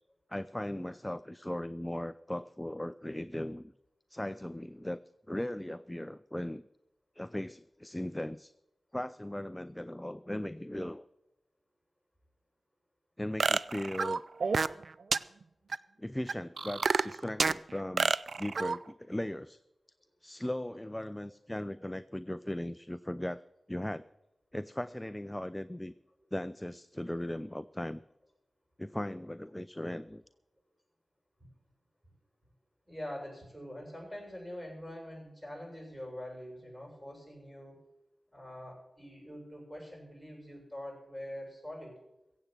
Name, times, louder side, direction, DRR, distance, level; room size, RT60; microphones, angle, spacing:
voice 1, 0.3-3.7 4.1-5.0 5.3-6.6 7.2-8.5 8.9-11.1 13.2-14.2 16.0-18.1 18.4-19.6 20.2-23.4 23.7-24.0 24.5-25.9 26.3-28.0 28.8-30.2, left 1 dB, 10° left, 14 dB, 0.4 m, -38 dB
sound 1, 13.4-14.8 15.1-15.2 15.7-15.8 16.3-17.6 18.0-18.8, right 4 dB, 75° right, 0.4 m, -28 dB
voice 2, 32.9-37.8 38.3-42.0, equal, 10° right, -1 dB, 7.2 m, -44 dB
16.0 x 8.1 x 7.3 m, 0.88 s
wide cardioid pair, 70°, 0 cm